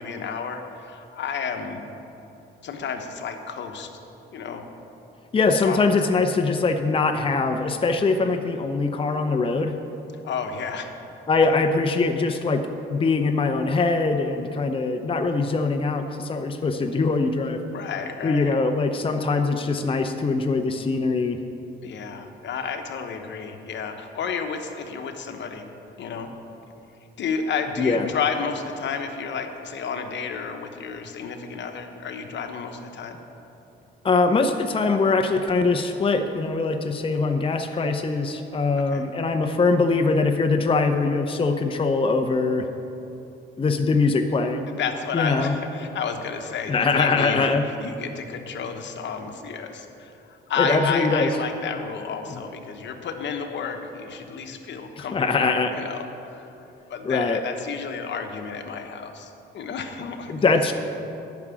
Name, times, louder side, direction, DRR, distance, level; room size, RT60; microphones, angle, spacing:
voice 1, 0.0-1.9 2.6-3.9 4.3-4.7 5.5-5.8 10.2-10.9 17.7-18.6 21.8-25.7 26.0-26.3 27.2-33.2 38.9-39.1 44.8-47.5 47.8-56.5 56.9-60.6, left 6 dB, 65° left, 6 dB, 1.1 m, -31 dB
voice 2, 5.3-9.8 11.3-17.6 18.2-21.4 27.8-28.1 34.0-42.7 43.6-44.7 45.1-45.5 46.7-47.6 50.6-51.3 52.3-52.4 55.0-55.7 57.0-57.4 60.3-60.7, left 3 dB, 25° left, 5 dB, 0.7 m, -22 dB
10.5 x 6.1 x 9.0 m, 2.9 s
cardioid pair, 90°, 20 cm